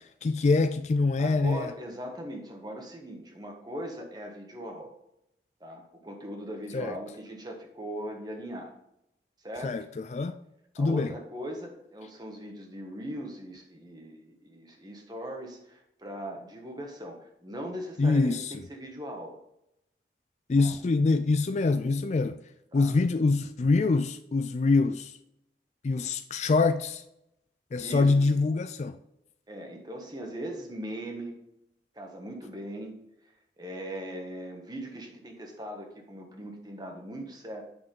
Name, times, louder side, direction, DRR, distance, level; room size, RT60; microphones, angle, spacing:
voice 1, 0.2-1.7 6.7-6.9 9.6-10.4 10.8-11.1 18.0-18.5 20.5-22.4 22.7-25.1 25.8-27.0 27.7-29.0, left 3 dB, 40° left, 0.3 m, -25 dB
voice 2, 1.2-4.9 5.6-8.7 9.4-9.8 10.8-18.4 18.7-19.4 20.6-20.9 22.7-23.0 27.8-28.3 29.5-31.4 31.9-33.0 33.6-37.6, equal, 25° right, 1.4 m, -39 dB
9.0 x 6.1 x 3.7 m
head